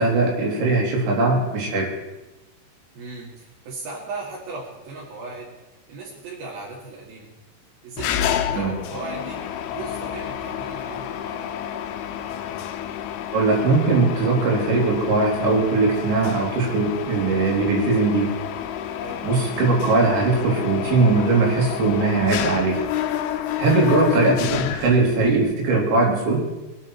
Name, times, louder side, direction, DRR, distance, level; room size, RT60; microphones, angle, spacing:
voice 1, 0.0-1.9 8.5-8.7 13.3-18.3 19.2-22.8 23.6-26.4, right 3 dB, 90° right, -2 dB, 5.1 m, -20 dB
voice 2, 2.9-5.5 5.9-7.3 7.8-11.6 19.0-19.3 23.7-23.9, right 3 dB, 60° right, -5 dB, 3.9 m, -37 dB
Mechanisms, 8.0-25.4, left 10 dB, 75° left, 2.5 m, -30 dB
22.0 x 10.0 x 4.5 m, 1.1 s
omnidirectional pair, 5.0 m